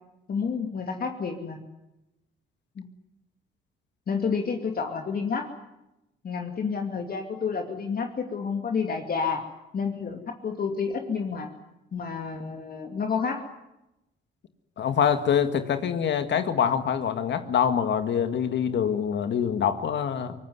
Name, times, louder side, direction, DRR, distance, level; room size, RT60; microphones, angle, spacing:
voice 1, 0.3-1.6 2.8-2.9 4.1-5.5 6.2-9.4 9.7-11.5 11.9-13.4, left 5 dB, 50° left, 4 dB, 2.6 m, -29 dB
voice 2, 14.8-20.3, left 8 dB, 65° left, 9 dB, 2.0 m, -25 dB
23.5 x 19.5 x 9.6 m, 0.92 s
cardioid pair, 90°, 20 cm